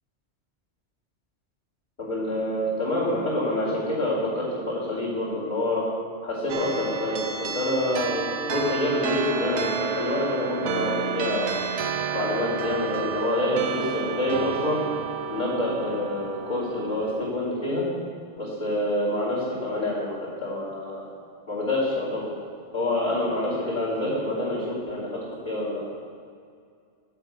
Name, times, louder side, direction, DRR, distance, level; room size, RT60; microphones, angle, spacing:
voice 1, 2.0-5.8 6.2-11.6 12.1-14.8 15.3-17.8 18.4-21.0 21.5-22.3 22.7-25.8, left 1 dB, 40° left, -13 dB, 3.2 m, -27 dB
sound 1, 6.5-17.3, right 6 dB, 70° right, 0.9 m, -31 dB
10.0 x 5.8 x 8.2 m, 2.2 s
omnidirectional pair, 1.2 m